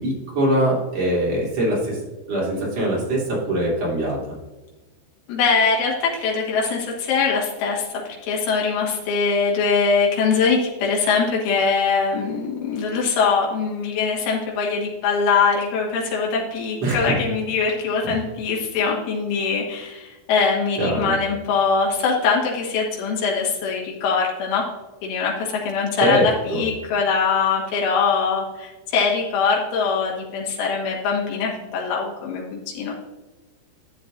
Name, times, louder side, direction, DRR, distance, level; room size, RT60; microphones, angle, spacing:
voice 1, 0.0-2.0 2.3-4.2 16.8-17.1 18.0-18.2 20.8-21.2 26.0-26.6, right 1 dB, 40° right, -5 dB, 3.7 m, -22 dB
voice 2, 5.3-24.7 25.0-32.9, left 5 dB, 90° left, -3 dB, 4.0 m, -22 dB
13.0 x 8.0 x 2.6 m, 1.1 s
omnidirectional pair, 5.3 m